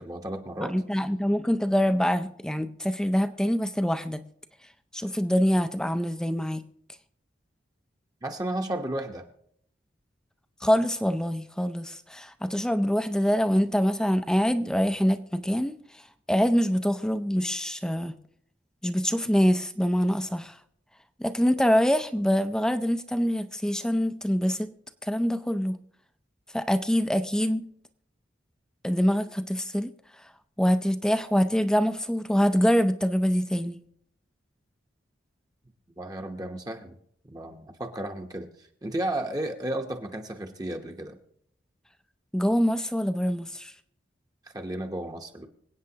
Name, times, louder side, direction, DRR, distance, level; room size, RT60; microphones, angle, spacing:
voice 1, 0.0-0.7 8.2-9.2 36.0-36.9 37.3-38.5 38.8-41.2 44.5-45.5, right 1 dB, 20° right, 3 dB, 0.8 m, -33 dB
voice 2, 0.7-4.2 4.9-6.6 10.6-15.8 16.3-18.2 18.8-20.6 21.2-24.7 25.0-25.8 26.5-27.7 28.8-29.9 30.6-33.8 42.3-43.7, equal, 5° left, 10 dB, 0.4 m, -25 dB
26.0 x 8.7 x 2.8 m, 0.68 s
head